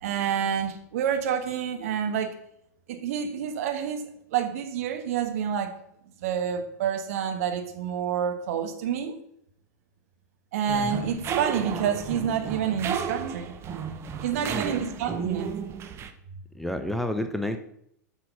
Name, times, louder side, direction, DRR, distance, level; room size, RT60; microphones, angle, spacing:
voice 1, 0.0-2.3 2.9-5.7 6.2-9.2 10.5-13.6 14.2-15.5, right 8 dB, 55° right, 1.4 m, -28 dB
sound 1, 10.7-16.1, right 7 dB, 25° right, 0.9 m, -33 dB
voice 2, 14.3-14.8 15.1-15.3 16.5-17.6, left 1 dB, ahead, 0.6 m, -31 dB
8.2 x 6.2 x 5.6 m
figure-of-eight pair, 95°, 10 cm